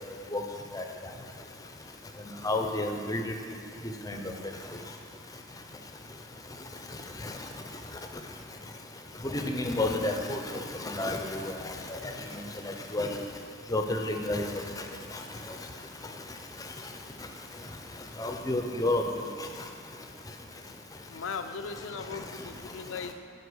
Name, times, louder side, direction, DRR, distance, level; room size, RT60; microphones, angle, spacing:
voice 1, 2.4-3.3 4.1-4.3 7.2-7.4 9.2-13.2 13.7-14.7 15.1-15.2 18.2-19.5, left 2 dB, 15° left, 4 dB, 0.6 m, -31 dB
voice 2, 21.1-23.1, left 5 dB, 70° left, 7 dB, 0.5 m, -38 dB
8.1 x 5.3 x 6.2 m, 2.3 s
head